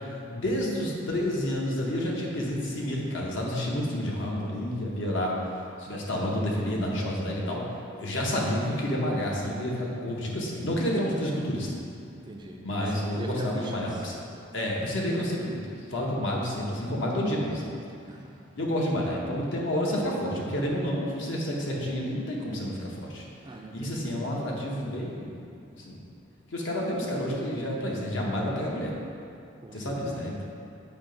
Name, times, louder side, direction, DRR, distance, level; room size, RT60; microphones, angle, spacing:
voice 1, 0.3-5.3 5.8-7.6 8.0-11.7 12.6-14.2 14.5-15.6 15.9-17.7 18.6-23.2 23.7-25.4 25.7-26.0 26.5-28.9 29.7-30.4, equal, 65° left, -3 dB, 1.0 m, -29 dB
voice 2, 12.1-13.9 18.1-18.4 23.4-24.4 29.6-30.2, right 2 dB, 20° right, 0 dB, 0.4 m, -42 dB
7.2 x 2.8 x 5.1 m, 2.5 s
head